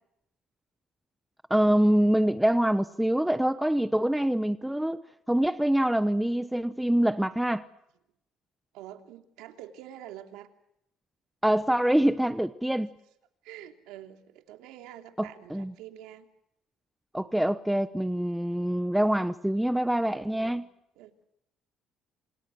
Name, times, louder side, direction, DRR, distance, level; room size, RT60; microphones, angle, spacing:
voice 1, 1.5-5.0 5.3-7.6 11.4-12.9 15.2-15.7 17.1-20.6, right 1 dB, 5° right, 11 dB, 0.9 m, -25 dB
voice 2, 8.7-10.5 13.4-16.3 20.3-20.6 21.0-21.3, right 12 dB, 85° right, 5 dB, 3.0 m, -46 dB
28.5 x 27.5 x 6.4 m, 0.80 s
cardioid pair, 120°, 0 cm